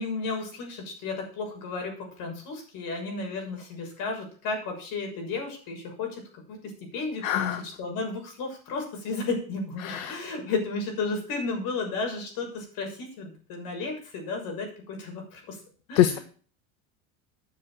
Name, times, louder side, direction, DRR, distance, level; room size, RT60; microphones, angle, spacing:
voice 1, 0.0-6.2 6.5-6.6 6.9-15.6 15.9-16.2, left 3 dB, 55° left, 2 dB, 6.7 m, -33 dB
voice 2, 7.2-7.6 9.8-10.2 16.0-16.2, left 12 dB, 75° left, 10 dB, 1.3 m, -24 dB
9.7 x 7.5 x 7.7 m, 0.42 s
supercardioid pair, 110°, 42 cm